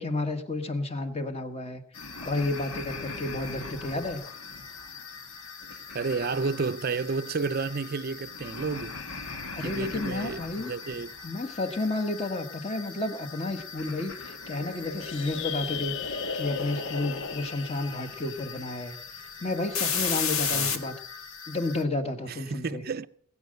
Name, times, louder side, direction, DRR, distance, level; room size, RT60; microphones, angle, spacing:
voice 1, 0.0-4.2 9.3-10.7 11.2-18.9 19.4-20.9 21.5-22.8, left 2 dB, 30° left, 1.5 m, -31 dB
sound 1, 1.9-21.8, left 5 dB, 80° left, 1.8 m, -37 dB
voice 2, 5.9-9.0 9.6-11.2 20.5-20.8 22.2-23.1, right 4 dB, 45° right, 0.5 m, -31 dB
sound 2, 15.0-19.7, left 12 dB, 55° left, 0.5 m, -40 dB
20.5 x 8.8 x 6.6 m
head